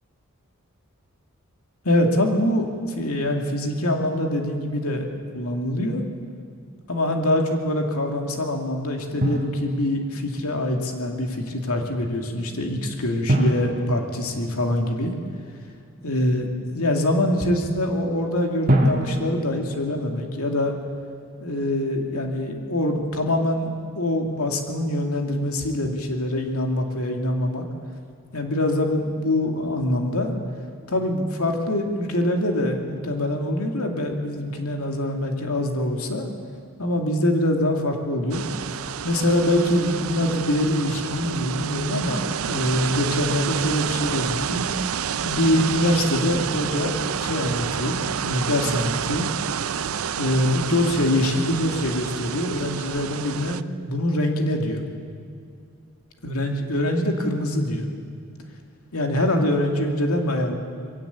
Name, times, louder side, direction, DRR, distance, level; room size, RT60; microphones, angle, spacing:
voice 1, 1.8-2.7 3.0-5.1 5.3-6.0 6.9-15.1 16.0-16.5 16.7-20.7 21.4-27.6 28.3-30.3 30.9-36.3 36.8-38.4 39.0-44.7 45.2-49.3 50.2-53.6 53.9-54.9 56.2-57.9 58.9-60.6, left 1 dB, 85° left, 3 dB, 2.5 m, -24 dB
Drum, 9.2-10.3 13.3-15.1 18.7-20.7, equal, 40° right, 1.9 m, -25 dB
sound 1, 38.3-53.6, right 8 dB, 80° right, 0.6 m, -29 dB
21.5 x 17.0 x 8.4 m, 2.3 s
head